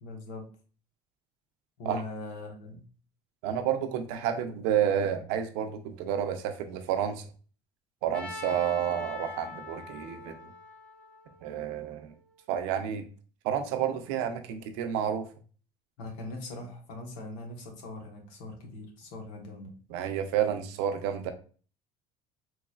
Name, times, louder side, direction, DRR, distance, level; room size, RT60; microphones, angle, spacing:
voice 1, 0.0-0.5 1.8-2.9 16.0-19.7, left 2 dB, 80° left, 1.2 m, -41 dB
voice 2, 3.4-7.2 8.0-10.5 11.4-12.1 12.5-13.0 13.4-15.3 19.9-21.3, right 9 dB, 90° right, 0.6 m, -30 dB
Trumpet, 8.1-12.2, left 3 dB, 10° left, 0.6 m, -43 dB
4.0 x 3.1 x 2.4 m
cardioid pair, 145°, 12 cm